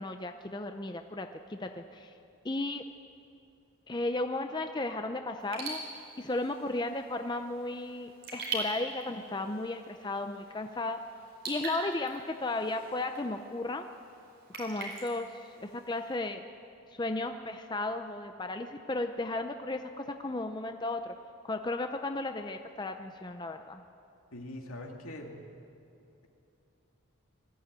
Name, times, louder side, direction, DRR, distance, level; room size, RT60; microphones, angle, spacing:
voice 1, 0.0-2.1 2.4-2.8 3.9-5.8 6.2-11.0 11.5-13.9 14.5-15.3 15.6-16.4 16.9-21.1 21.4-23.8, left 2 dB, 20° left, 6 dB, 0.6 m, -34 dB
Raindrop / Drip, 5.4-16.2, right 3 dB, 55° right, 4.8 m, -43 dB
voice 2, 24.3-25.4, left 1 dB, 75° left, 1 dB, 2.5 m, -42 dB
20.5 x 14.0 x 9.0 m, 2.7 s
head